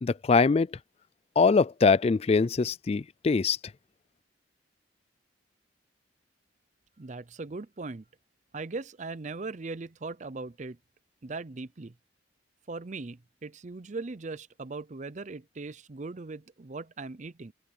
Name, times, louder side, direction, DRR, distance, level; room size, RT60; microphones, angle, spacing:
voice 1, 0.0-0.7 1.4-3.6, left 4 dB, 35° left, 0.3 m, -23 dB
voice 2, 7.0-8.0 8.5-10.8 11.2-11.9 12.7-17.5, right 3 dB, 40° right, 0.6 m, -39 dB
open air
head